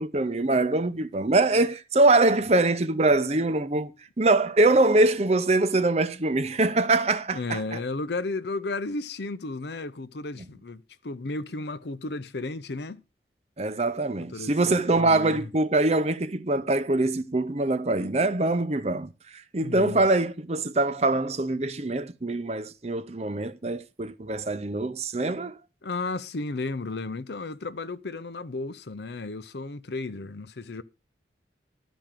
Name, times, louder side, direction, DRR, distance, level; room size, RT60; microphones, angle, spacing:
voice 1, 0.0-7.8 13.6-19.1 19.5-25.6, right 2 dB, 35° right, 0.7 m, -23 dB
voice 2, 7.3-13.0 14.3-15.5 19.6-20.0 25.8-30.8, left 3 dB, 70° left, 0.7 m, -34 dB
12.0 x 5.1 x 7.5 m
head